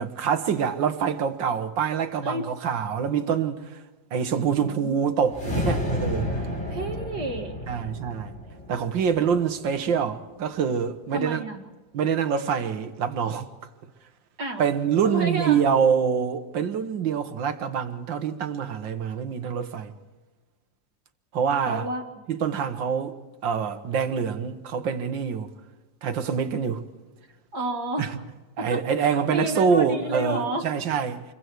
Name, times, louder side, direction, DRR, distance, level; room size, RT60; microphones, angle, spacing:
voice 1, 0.0-3.6 4.1-6.3 7.7-8.3 8.7-11.4 11.9-13.5 14.6-19.9 21.3-21.9 22.3-23.2 23.4-25.5 26.0-26.8 28.0-28.1 28.6-31.2, right 7 dB, 90° right, 2.1 m, -25 dB
voice 2, 4.4-5.1 6.7-7.6 11.1-11.6 14.4-14.6 15.0-15.6 21.7-22.3 27.5-28.2 28.6-30.7, right 1 dB, 60° right, 2.7 m, -31 dB
sound 1, 5.2-9.6, left 1 dB, 35° left, 4.3 m, -31 dB
28.0 x 23.0 x 4.7 m
omnidirectional pair, 2.0 m